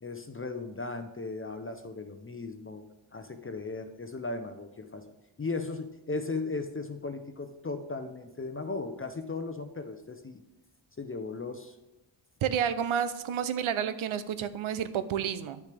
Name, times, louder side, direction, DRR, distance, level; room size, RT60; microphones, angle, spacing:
voice 1, 0.0-2.8 3.1-5.0 5.4-10.4 11.0-11.8, left 3 dB, 25° left, 7 dB, 0.7 m, -37 dB
voice 2, 12.4-15.6, right 8 dB, 75° right, 12 dB, 0.7 m, -30 dB
10.5 x 6.6 x 3.4 m, 1.0 s
cardioid pair, 65°, 49 cm